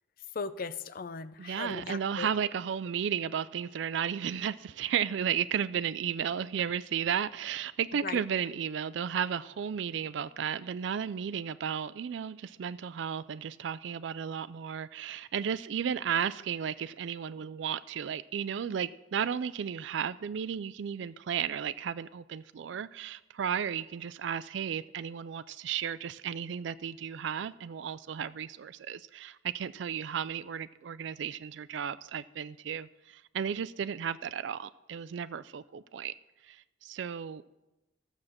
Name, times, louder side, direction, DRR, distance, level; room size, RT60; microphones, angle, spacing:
voice 1, 0.3-2.3 8.0-8.2, left 4 dB, 50° left, 0.5 m, -38 dB
voice 2, 1.4-36.1 36.4-37.4, right 8 dB, 65° right, 0.4 m, -34 dB
13.5 x 7.2 x 6.5 m
head